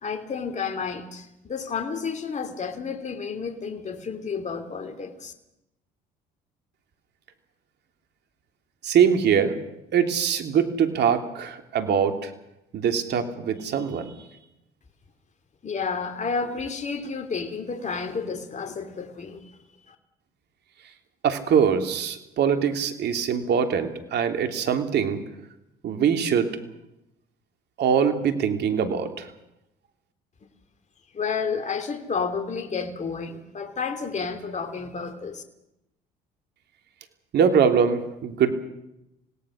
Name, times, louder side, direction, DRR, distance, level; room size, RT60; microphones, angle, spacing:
voice 1, 0.0-5.3 15.6-19.6 19.9-20.0 31.1-35.4, left 5 dB, 35° left, 7 dB, 2.9 m, -31 dB
voice 2, 8.8-9.6 9.9-12.3 12.7-14.1 21.2-25.2 25.8-26.5 27.8-29.3 37.3-38.5, right 7 dB, 60° right, 6 dB, 3.1 m, -23 dB
27.5 x 18.0 x 6.4 m, 0.87 s
supercardioid pair, 70°, 20 cm